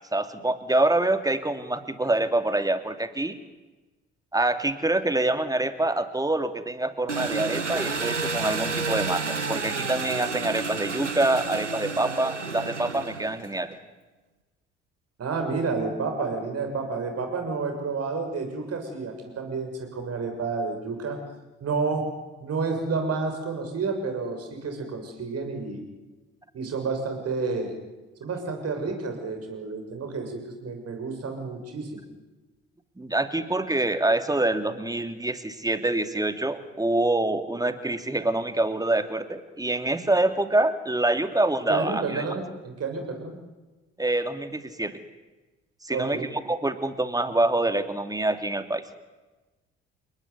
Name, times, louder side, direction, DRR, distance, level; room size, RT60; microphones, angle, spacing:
voice 1, 0.1-3.4 4.3-13.8 33.0-42.2 44.0-45.0 45.8-48.8, right 2 dB, 10° right, 9 dB, 2.8 m, -26 dB
Engine, 7.1-13.6, right 4 dB, 90° right, 1.0 m, -30 dB
voice 2, 15.2-21.2 21.6-22.1 22.4-25.8 26.5-27.7 28.2-32.0 41.7-43.4 45.9-46.3, right 4 dB, 45° right, 5 dB, 7.0 m, -30 dB
29.5 x 19.0 x 9.7 m, 1.1 s
figure-of-eight pair, 50°, 35 cm